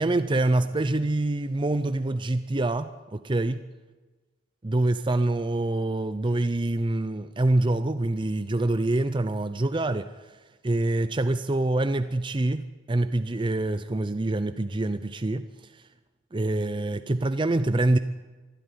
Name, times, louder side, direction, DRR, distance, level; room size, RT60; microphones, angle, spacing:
voice 1, 0.0-3.6 4.6-10.3 10.6-15.5 15.7-15.8 16.3-18.0, right 2 dB, 25° right, 10 dB, 0.5 m, -25 dB
24.5 x 11.5 x 9.8 m, 1.3 s
head